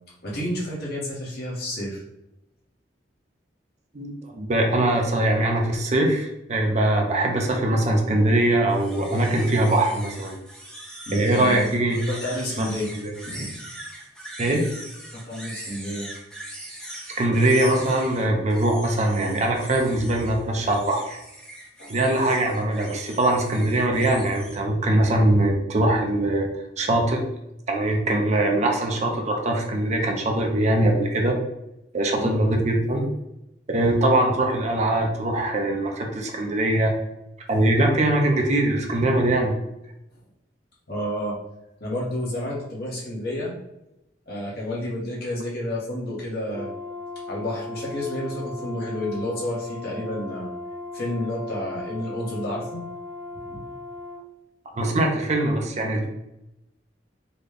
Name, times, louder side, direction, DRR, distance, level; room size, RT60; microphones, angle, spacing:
voice 1, 0.2-2.0 11.1-11.7 12.1-12.9 13.2-13.5 15.1-16.1 21.8-21.9 32.1-32.5 40.9-41.3 41.8-43.5 44.3-46.7 47.3-50.5 50.9-52.8 53.5-53.6, left 1 dB, 60° left, -5 dB, 1.2 m, -30 dB
voice 2, 3.9-10.4 11.1-12.0 12.6-12.7 13.0-13.1 14.4-14.6 17.2-21.2 21.9-26.5 26.8-27.2 27.7-31.3 31.9-33.0 33.7-36.9 37.5-39.5 54.8-56.1, right 1 dB, 40° right, 2 dB, 0.6 m, -22 dB
sound 1, 8.7-24.6, right 1 dB, 5° left, 0.6 m, -41 dB
Brass instrument, 46.5-54.2, left 2 dB, 80° right, 0.7 m, -37 dB
3.9 x 2.3 x 3.3 m, 0.87 s
head